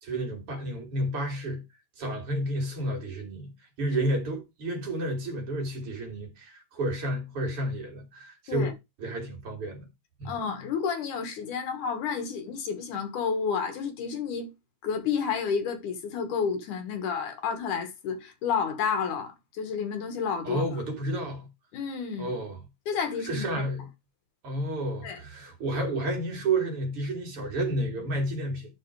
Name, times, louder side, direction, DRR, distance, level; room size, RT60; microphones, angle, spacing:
voice 1, 0.0-1.6 2.0-3.5 3.8-8.7 9.0-9.9 10.2-10.4 20.4-21.5 22.2-22.6 23.2-23.9 24.4-28.8, right 1 dB, 45° right, 3.3 m, -31 dB
voice 2, 10.2-14.5 14.8-20.6 21.7-22.3 22.9-23.5 25.0-25.2, left 6 dB, 70° left, 2.9 m, -30 dB
11.0 x 4.6 x 4.7 m
omnidirectional pair, 3.7 m